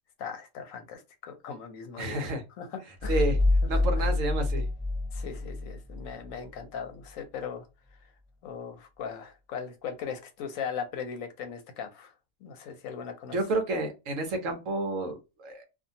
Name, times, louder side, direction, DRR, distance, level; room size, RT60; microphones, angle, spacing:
voice 1, 0.2-2.3 2.6-3.2 3.7-3.8 5.1-7.7 8.4-12.1 12.4-13.4, left 7 dB, 70° left, 0.9 m, -39 dB
voice 2, 2.0-2.4 3.1-3.4 3.7-4.7 13.3-15.6, right 2 dB, 65° right, 1.0 m, -30 dB
sound 1, 3.0-6.4, left 2 dB, ahead, 0.9 m, -27 dB
2.6 x 2.4 x 2.6 m
omnidirectional pair, 1.6 m